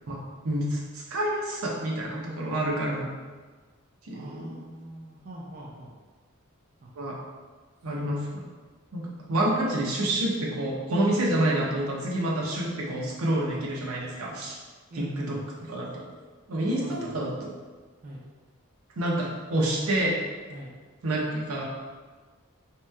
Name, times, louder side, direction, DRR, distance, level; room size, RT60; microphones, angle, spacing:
voice 1, 0.4-3.1 4.1-4.6 7.0-7.2 7.8-8.4 8.9-9.0 9.3-14.5 14.9-15.4 15.7-16.0 16.5-17.5 19.0-20.1 21.0-21.6, right 1 dB, 80° right, -3 dB, 0.7 m, -28 dB
voice 2, 4.1-5.9 6.8-6.9 8.0-8.2 11.3-11.4 14.9-15.5 16.5-17.2 18.0-18.2 20.5-20.7, right 1 dB, 40° right, -4 dB, 0.4 m, -41 dB
3.1 x 2.9 x 2.2 m, 1.4 s
head